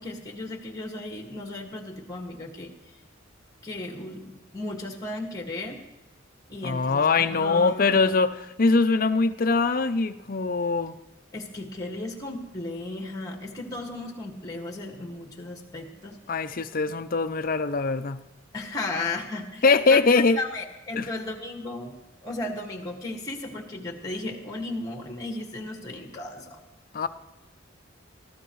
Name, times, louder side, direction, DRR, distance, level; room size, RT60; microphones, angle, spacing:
voice 1, 0.0-2.7 3.6-5.8 6.5-8.1 11.3-16.2 16.9-17.0 18.5-19.6 19.9-20.0 20.4-21.9 22.2-26.6, left 2 dB, 20° left, 1 dB, 1.9 m, -35 dB
voice 2, 6.6-11.0 16.3-18.2 19.6-20.4 21.0-21.1 26.9-27.1, left 4 dB, 45° left, 10 dB, 0.6 m, -22 dB
21.5 x 15.0 x 3.2 m, 1.0 s
head